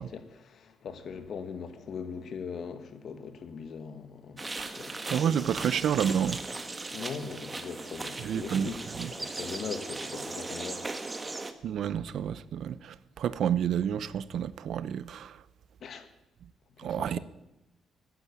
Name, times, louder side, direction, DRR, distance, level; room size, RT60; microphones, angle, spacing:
voice 1, 0.0-5.4 6.9-10.9 11.2-11.3 15.8-16.1 16.8-17.2, left 6 dB, 60° left, 1.8 m, -41 dB
sound 1, 4.4-11.5, right 3 dB, 20° right, 1.4 m, -38 dB
voice 2, 5.1-6.4 8.2-8.7 9.0-9.1 11.6-15.4 16.8-17.2, right 9 dB, 70° right, 0.7 m, -29 dB
14.5 x 9.9 x 8.3 m
cardioid pair, 90°, 0 cm